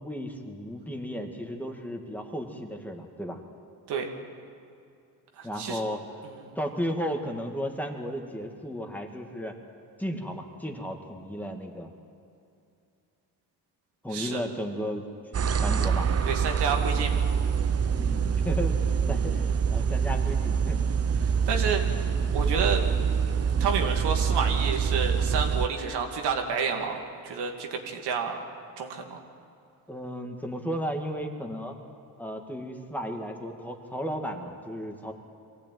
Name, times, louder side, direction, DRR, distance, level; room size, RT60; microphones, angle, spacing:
voice 1, 0.0-3.4 5.4-6.0 6.6-9.6 10.0-11.9 14.0-15.1 15.5-16.1 17.9-20.9 29.9-31.8 32.2-35.1, equal, 5° left, 3 dB, 1.9 m, -34 dB
voice 2, 5.4-5.8 6.5-6.6 14.1-14.4 16.3-17.4 21.2-22.8 23.3-28.4 28.8-29.2, right 6 dB, 90° right, 2 dB, 2.5 m, -30 dB
sound 1, 15.3-25.7, right 6 dB, 40° right, 0.9 m, -25 dB
23.5 x 15.5 x 9.3 m, 2.5 s
cardioid pair, 125°, 39 cm